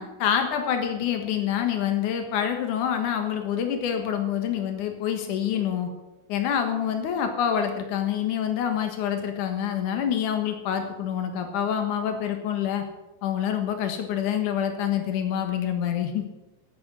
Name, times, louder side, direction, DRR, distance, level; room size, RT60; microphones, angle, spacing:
voice 1, 0.0-5.9 6.3-12.8 13.2-16.3, left 9 dB, 60° left, 5 dB, 2.7 m, -26 dB
10.5 x 9.5 x 7.8 m, 1.0 s
omnidirectional pair, 4.7 m